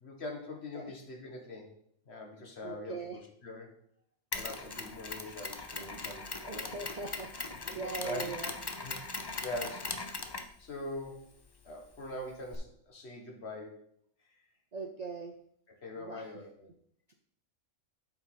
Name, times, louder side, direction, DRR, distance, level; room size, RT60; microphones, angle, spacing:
voice 1, 0.0-1.7 2.1-3.7 4.3-6.7 7.5-8.3 8.8-9.0 9.4-10.1 10.6-11.3 11.6-13.8 14.2-14.3 15.7-16.7, left 1 dB, 55° left, 2 dB, 1.6 m, -43 dB
voice 2, 2.6-3.2 6.5-8.5 14.7-15.3 15.9-16.3, right 4 dB, 45° right, 4 dB, 0.5 m, -41 dB
Mechanisms, 4.3-12.6, left 3 dB, 30° left, 0.4 m, -41 dB
7.9 x 5.3 x 4.3 m, 0.67 s
omnidirectional pair, 1.3 m